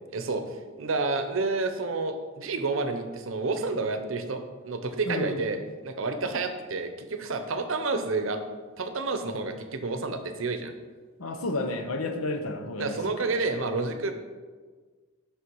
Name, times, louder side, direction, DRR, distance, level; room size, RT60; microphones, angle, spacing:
voice 1, 0.1-0.5 0.8-8.4 8.8-10.7 12.8-14.1, right 3 dB, 70° right, 8 dB, 0.7 m, -29 dB
voice 2, 5.1-5.4 11.2-13.3, left 2 dB, 85° left, 6 dB, 0.8 m, -31 dB
6.7 x 5.8 x 4.6 m, 1.4 s
head